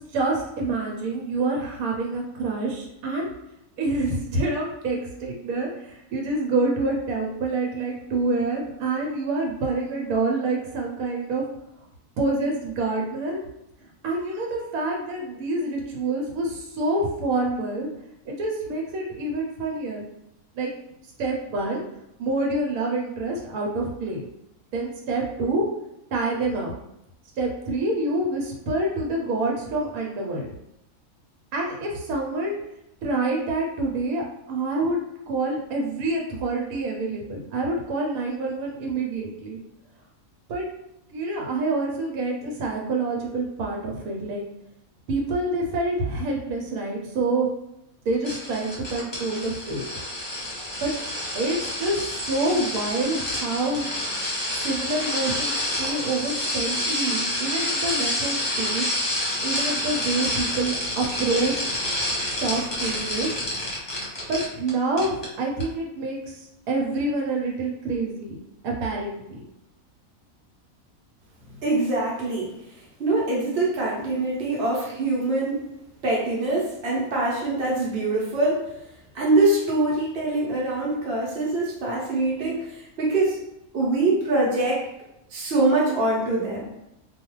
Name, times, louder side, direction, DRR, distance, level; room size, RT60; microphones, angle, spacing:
voice 1, 0.0-3.3 3.8-11.4 12.2-13.4 14.0-17.9 18.3-20.0 20.6-20.7 21.2-21.8 22.2-24.2 24.7-25.7 26.1-26.7 27.4-30.5 31.5-32.5 33.0-35.0 35.3-39.6 40.5-40.7 41.1-44.5 45.1-47.5 48.1-49.9 50.8-50.9 51.3-53.9 54.6-58.9 59.4-61.7 62.4-63.3 64.3-66.2 66.7-69.4, right 2 dB, 85° right, -1 dB, 1.1 m, -27 dB
sound 1, 48.2-64.7 65.0-65.3 65.6-65.7, left 1 dB, 30° left, 0.4 m, -28 dB
voice 2, 71.6-72.5 73.0-75.6 76.0-78.6 79.1-83.4 83.7-84.9 85.3-86.7, right 2 dB, 55° right, -5 dB, 0.8 m, -24 dB
2.3 x 2.3 x 3.0 m, 0.85 s
omnidirectional pair, 1.5 m